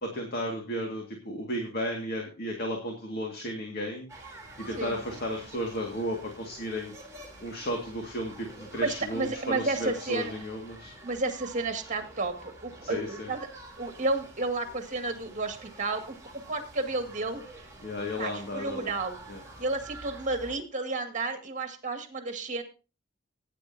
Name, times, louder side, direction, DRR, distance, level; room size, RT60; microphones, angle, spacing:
voice 1, 0.0-4.1 4.6-6.9 7.4-10.9 12.8-13.3 17.8-19.0 19.3-19.4, equal, 55° left, 2 dB, 2.0 m, -34 dB
sound 1, 4.1-20.6, right 2 dB, 15° right, 3.3 m, -48 dB
voice 2, 8.8-10.3 11.0-13.5 13.8-16.2 16.5-17.4 18.2-19.2 19.6-22.6, right 2 dB, 40° right, 5 dB, 2.1 m, -31 dB
17.5 x 9.8 x 2.8 m, 0.32 s
head